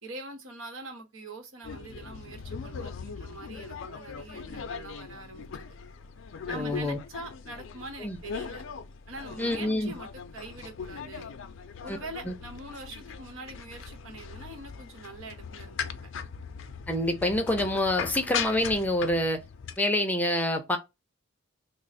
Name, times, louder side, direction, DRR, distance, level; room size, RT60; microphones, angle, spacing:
voice 1, 0.0-5.5 6.5-8.6 9.1-11.3 11.8-15.9, right 2 dB, 75° right, 1.1 m, -43 dB
sound 1, 1.6-19.8, left 6 dB, 65° left, 0.4 m, -40 dB
voice 2, 6.5-7.0 8.0-8.2 9.4-9.9 11.9-12.0 12.3-12.4 16.9-19.4 19.8-20.8, left 1 dB, 10° left, 0.5 m, -27 dB
3.0 x 2.0 x 4.0 m
head